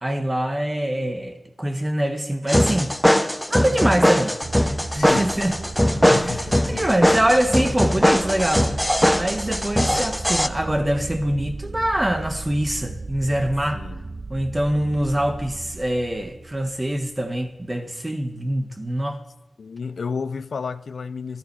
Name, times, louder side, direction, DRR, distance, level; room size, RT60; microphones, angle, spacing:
voice 1, 0.0-3.0 3.5-4.4 4.9-5.6 6.2-8.7 9.1-13.8 14.3-19.2, right 1 dB, 20° right, 1.6 m, -24 dB
sound 1, 2.5-10.5, equal, 5° left, 0.7 m, -20 dB
sound 2, 4.4-17.3, right 3 dB, 50° right, 0.4 m, -36 dB
voice 2, 5.0-5.3 6.1-6.9 13.7-14.1 19.6-21.4, left 5 dB, 85° left, 0.5 m, -31 dB
14.0 x 13.5 x 4.8 m
wide cardioid pair, 75°, 0 cm